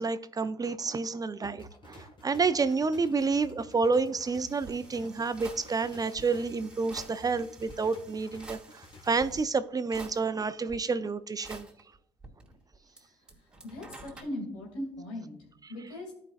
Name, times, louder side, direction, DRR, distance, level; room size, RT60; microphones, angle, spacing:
voice 1, 0.0-11.7, right 4 dB, 30° right, 0.5 m, -29 dB
sound 1, 1.4-9.4, left 1 dB, 45° left, 1.5 m, -52 dB
sound 2, 4.2-9.4 9.9-10.8 11.4-13.0 13.3-14.2, right 2 dB, 5° right, 2.4 m, -49 dB
voice 2, 13.6-15.4 15.7-16.1, left 1 dB, 85° left, 2.4 m, -38 dB
14.0 x 5.3 x 2.4 m
hypercardioid pair, 55°, 12 cm